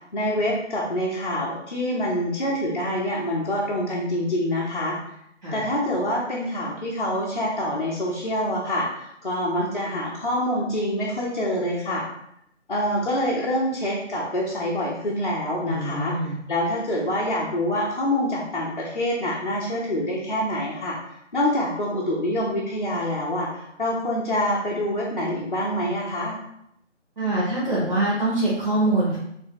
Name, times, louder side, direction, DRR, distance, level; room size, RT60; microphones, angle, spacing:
voice 1, 0.1-5.0 5.5-12.0 12.7-21.0 21.3-26.4, left 1 dB, 45° left, -5 dB, 0.7 m, -26 dB
voice 2, 15.6-16.3 27.2-29.2, right 2 dB, 40° right, -7 dB, 0.9 m, -24 dB
3.3 x 2.9 x 3.1 m, 0.76 s
figure-of-eight pair, 160°, 37 cm